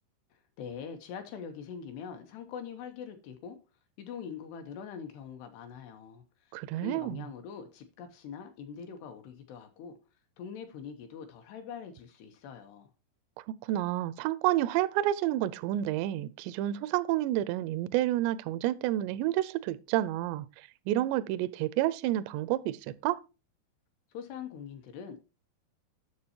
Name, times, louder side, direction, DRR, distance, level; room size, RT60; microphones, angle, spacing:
voice 1, 0.3-3.6 4.0-10.0 10.4-12.9 24.1-25.2, left 7 dB, 75° left, 2.6 m, -43 dB
voice 2, 6.5-7.3 13.6-22.8 23.0-23.2, right 14 dB, 85° right, 2.5 m, -29 dB
9.6 x 6.7 x 2.8 m
omnidirectional pair, 5.4 m